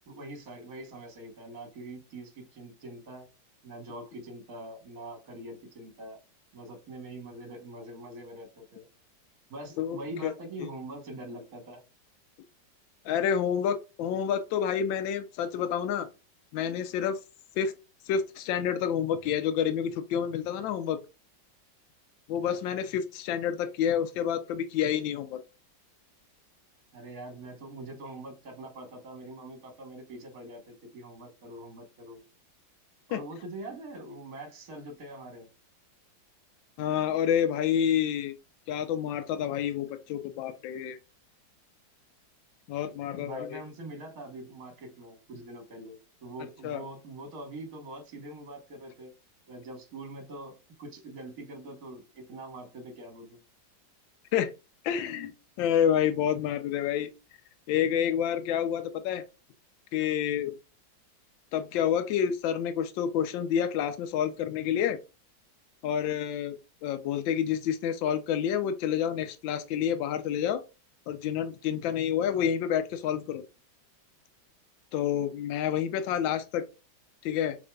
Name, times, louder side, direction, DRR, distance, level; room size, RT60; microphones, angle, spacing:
voice 1, 0.1-3.3 3.6-6.2 6.5-8.9 9.5-11.8 26.9-32.2 33.1-35.5 43.2-49.1 49.5-53.4, right 1 dB, 55° right, 1.6 m, -43 dB
voice 2, 9.8-10.3 13.0-16.1 16.5-17.2 17.6-17.7 18.1-21.0 22.3-25.4 33.1-33.2 36.8-38.3 38.7-41.0 42.7-43.6 46.6-46.8 54.3-54.5 54.8-57.1 57.7-59.2 59.9-60.6 61.5-65.0 65.8-66.6 66.8-70.6 71.1-73.4 74.9-76.6 77.2-77.6, left 9 dB, 90° left, 1.3 m, -28 dB
6.3 x 3.5 x 2.2 m
omnidirectional pair, 2.0 m